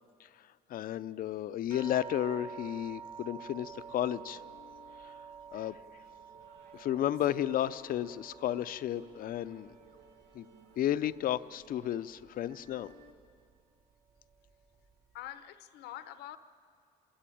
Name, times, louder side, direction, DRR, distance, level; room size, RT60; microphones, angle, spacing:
voice 1, 0.7-4.4 5.0-5.1 5.5-5.8 6.7-9.7 10.3-10.5 10.8-12.9, left 11 dB, 55° left, 14 dB, 0.6 m, -33 dB
sound 1, 1.7-10.5 10.8-11.7 12.5-12.6 13.0-13.1, right 7 dB, 50° right, 4.6 m, -49 dB
sound 2, 3.6-13.1, right 2 dB, 80° right, 1.6 m, -60 dB
voice 2, 15.1-16.4, left 13 dB, 85° left, 12 dB, 0.9 m, -45 dB
27.5 x 13.0 x 9.1 m, 2.3 s
cardioid pair, 110°, 17 cm